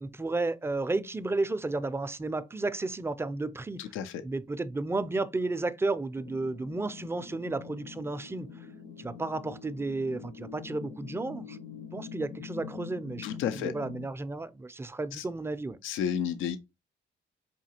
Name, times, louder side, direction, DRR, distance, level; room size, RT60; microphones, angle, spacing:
voice 1, 0.0-3.8 4.2-8.5 9.0-11.6 11.9-13.3 13.6-15.8, right 2 dB, 10° right, 0.4 m, -32 dB
voice 2, 3.8-4.2 13.2-13.7 15.1-15.2 15.8-16.6, left 8 dB, 90° left, 0.5 m, -32 dB
sound 1, 6.1-14.1, left 7 dB, 75° left, 1.1 m, -45 dB
4.8 x 2.8 x 2.8 m
cardioid pair, 90°, 20 cm